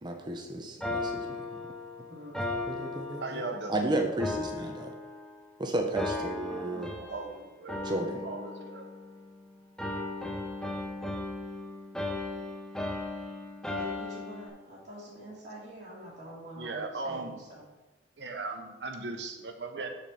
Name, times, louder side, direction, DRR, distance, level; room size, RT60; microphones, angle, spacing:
voice 1, 0.0-1.3 2.7-3.4 3.7-4.9 5.6-6.9 7.8-8.2, right 1 dB, 25° right, 3 dB, 0.7 m, -32 dB
sound 1, 0.8-3.7 4.2-5.5 6.0-7.3 7.7-9.4 9.8-14.5, left 2 dB, 5° left, 0.8 m, -37 dB
voice 2, 2.1-3.0 6.1-7.5 13.7-17.7, equal, 45° right, -10 dB, 2.0 m, -46 dB
voice 3, 3.2-3.8 7.1-7.9 8.2-8.9 16.6-17.4 18.2-19.9, right 3 dB, 70° right, 4 dB, 1.0 m, -37 dB
6.6 x 4.3 x 6.4 m, 1.1 s
head